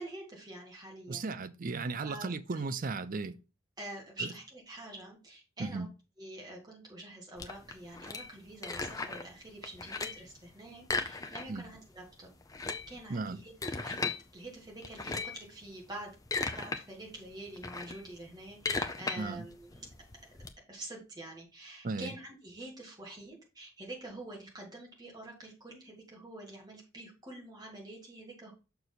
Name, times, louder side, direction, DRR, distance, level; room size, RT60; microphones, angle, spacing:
voice 1, 0.0-1.2 2.0-2.6 3.8-5.8 6.2-12.3 12.9-13.5 13.8-16.1 16.4-19.9 20.7-28.5, right 2 dB, 20° right, 2.2 m, -46 dB
voice 2, 1.1-3.4 4.2-4.3 5.6-5.9 11.5-11.6 13.1-13.4 19.2-19.4 21.8-22.1, right 3 dB, 40° right, 0.4 m, -35 dB
sound 1, 7.4-9.3 9.6-10.3 10.8-11.7 12.0-12.1 12.4-14.2 14.8-15.5 16.0-16.8 17.2-20.5, left 3 dB, 15° left, 0.5 m, -36 dB
6.5 x 4.6 x 4.0 m
head